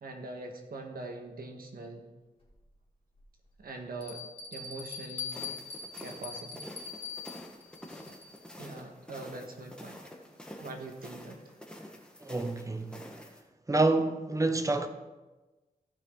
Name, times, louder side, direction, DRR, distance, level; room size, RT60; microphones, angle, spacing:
voice 1, 0.0-2.1 3.6-4.2 4.5-5.5 6.0-6.6 8.6-10.1 10.6-11.4, right 2 dB, 80° right, 1.5 m, -43 dB
Bell, 2.4-2.5 3.2-3.3 4.0-8.6, left 5 dB, 40° left, 2.3 m, -42 dB
sound 1, 5.3-13.4, equal, 5° left, 1.4 m, -48 dB
voice 2, 12.2-13.0 13.7-14.9, right 2 dB, 20° right, 0.9 m, -28 dB
15.0 x 5.9 x 3.9 m
wide cardioid pair, 80°, 15 cm